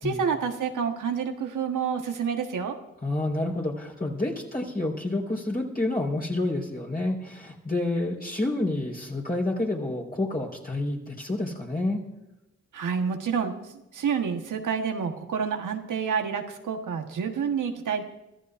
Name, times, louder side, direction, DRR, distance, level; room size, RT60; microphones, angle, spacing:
voice 1, 0.0-2.8 12.7-13.6 13.9-18.0, right 6 dB, 85° right, 5 dB, 1.3 m, -28 dB
voice 2, 3.0-12.0, left 2 dB, 30° left, -2 dB, 4.3 m, -29 dB
25.5 x 14.0 x 2.5 m, 0.94 s
supercardioid pair, 40°, 30 cm